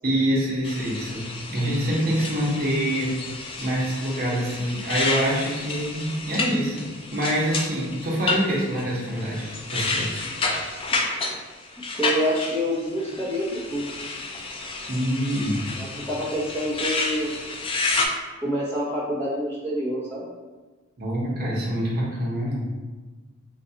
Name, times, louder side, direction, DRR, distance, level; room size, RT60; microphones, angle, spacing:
voice 1, 0.0-3.1 3.6-6.9 7.1-10.1 14.9-15.6 21.0-22.7, equal, 50° right, -5 dB, 0.8 m, -25 dB
sound 1, 0.6-18.1, left 3 dB, 25° left, 0.3 m, -30 dB
voice 2, 11.9-13.9 15.8-17.3 18.4-20.2, equal, 10° left, -7 dB, 0.7 m, -27 dB
3.8 x 2.3 x 2.7 m, 1.3 s
head